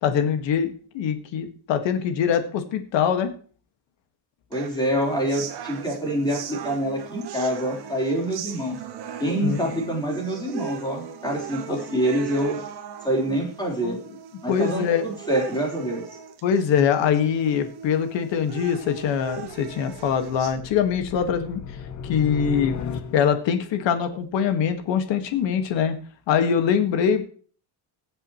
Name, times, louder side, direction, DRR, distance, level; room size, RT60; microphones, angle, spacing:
voice 1, 0.0-3.3 9.4-9.6 11.7-11.8 13.8-14.0 14.5-15.1 16.4-21.6 22.0-22.8 23.1-26.0 26.3-27.3, left 7 dB, 60° left, 8 dB, 2.0 m, -23 dB
voice 2, 4.5-8.8 9.2-12.6 13.0-14.0 14.4-16.0, right 1 dB, 10° left, -1 dB, 4.2 m, -26 dB
sound 1, 4.5-20.5, right 9 dB, 50° right, 1.9 m, -39 dB
sound 2, 18.3-23.6, left 7 dB, 35° left, 0.9 m, -36 dB
21.5 x 7.7 x 3.2 m, 0.42 s
cardioid pair, 170°, 49 cm